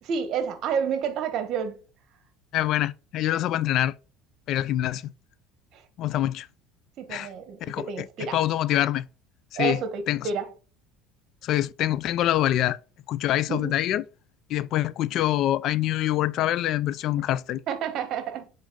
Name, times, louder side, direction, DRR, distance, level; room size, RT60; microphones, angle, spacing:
voice 1, 0.0-1.8 5.7-5.8 7.0-8.4 9.6-10.5 13.5-13.8 17.7-18.5, right 6 dB, 50° right, 1.2 m, -30 dB
voice 2, 2.5-3.9 4.5-5.1 6.0-6.5 7.1-7.3 7.6-7.8 8.3-9.1 9.5-9.8 10.1-10.2 11.4-12.8 13.1-14.0 14.5-17.6, left 13 dB, 55° left, 0.3 m, -25 dB
7.2 x 3.7 x 3.8 m
supercardioid pair, 120°, 0 cm